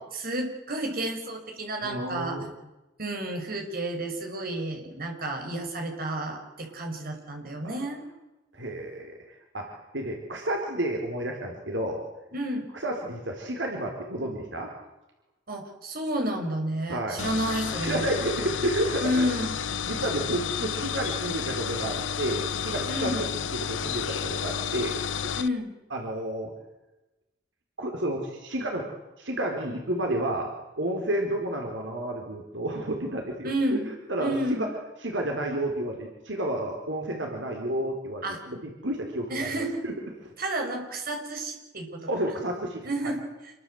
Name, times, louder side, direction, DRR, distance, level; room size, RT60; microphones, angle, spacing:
voice 1, 0.0-2.4 3.0-8.0 12.3-12.7 15.5-18.1 19.0-19.6 22.9-23.3 25.4-25.7 33.4-33.9 34.2-34.7 38.2-38.4 39.3-39.8 40.4-42.1 42.8-43.3, right 1 dB, 50° right, 3 dB, 6.3 m, -31 dB
voice 2, 1.8-2.5 7.6-7.8 8.5-12.0 12.7-14.7 16.9-17.2 17.8-19.3 19.8-23.3 23.5-25.3 25.9-26.5 27.8-28.9 29.2-30.5 30.8-33.8 34.1-34.7 35.0-39.5 39.8-39.9 40.2-40.3 42.1-43.1, right 1 dB, 75° right, 2 dB, 4.4 m, -31 dB
sound 1, 17.2-25.5, left 7 dB, 80° left, 0.9 m, -31 dB
28.0 x 23.0 x 8.0 m, 1.0 s
head